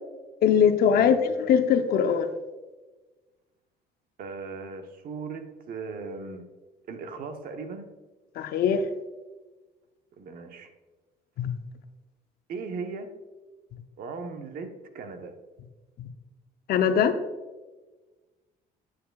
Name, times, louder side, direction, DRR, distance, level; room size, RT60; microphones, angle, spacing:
voice 1, 0.4-1.2 1.5-2.3 8.4-8.8 11.4-11.5 16.7-17.2, left 7 dB, 65° left, 9 dB, 0.7 m, -21 dB
voice 2, 4.2-6.5 6.9-7.9 10.2-10.7 12.5-13.1 14.0-15.3, right 4 dB, 60° right, 6 dB, 0.9 m, -37 dB
9.4 x 6.6 x 2.3 m, 1.2 s
cardioid pair, 110°, 17 cm